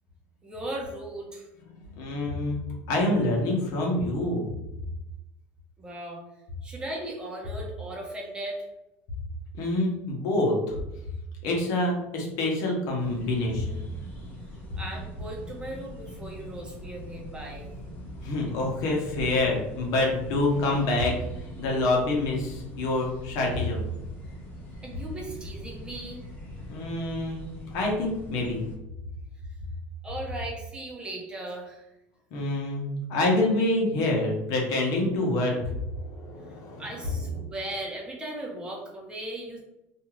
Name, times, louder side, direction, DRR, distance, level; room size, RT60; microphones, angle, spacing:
voice 1, 0.4-1.5 5.8-6.2 6.6-8.7 14.8-17.7 24.8-26.2 30.0-31.9 36.8-39.6, right 1 dB, 15° right, -2 dB, 0.8 m, -37 dB
voice 2, 2.0-4.5 9.6-10.8 11.4-13.8 18.2-23.9 26.7-27.4 27.7-28.6 32.3-36.8, left 2 dB, 65° left, -1 dB, 0.9 m, -26 dB
sound 1, 13.0-28.8, equal, 30° left, 1.0 m, -42 dB
2.6 x 2.4 x 3.1 m, 0.91 s
supercardioid pair, 125°, 6 cm